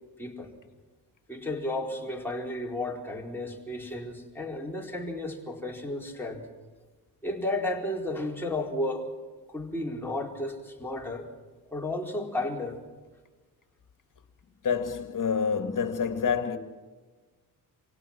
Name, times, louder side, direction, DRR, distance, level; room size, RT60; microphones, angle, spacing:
voice 1, 0.2-0.5 1.3-6.5 7.2-9.1 9.5-11.3 11.7-12.8, left 1 dB, 5° left, 4.4 m, -33 dB
voice 2, 14.6-16.6, left 6 dB, 50° left, 2.3 m, -27 dB
26.5 x 17.5 x 6.1 m
cardioid pair, 80°, 41 cm